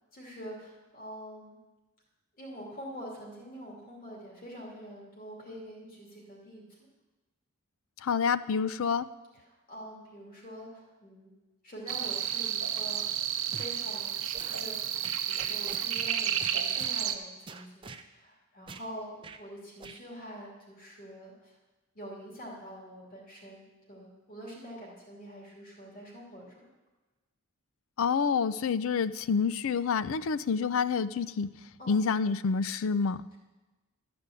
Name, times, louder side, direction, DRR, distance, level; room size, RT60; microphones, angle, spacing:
voice 1, 0.1-1.6 2.3-6.6 9.3-11.3 11.6-13.1 13.5-14.8 15.2-21.5 21.9-26.7 31.8-32.0, equal, 40° left, -4 dB, 2.7 m, -45 dB
voice 2, 8.0-9.1 28.0-31.5 31.9-33.2, left 5 dB, 65° left, 15 dB, 0.4 m, -28 dB
sound 1, 11.9-17.2, right 10 dB, 70° right, 0.8 m, -31 dB
sound 2, 13.5-13.8 14.3-14.6 15.0-16.1 16.4-17.0 17.5-18.0 18.7-18.9 19.2-19.4 19.8-20.0, right 4 dB, 20° right, 0.4 m, -45 dB
12.5 x 5.2 x 8.3 m, 1.1 s
head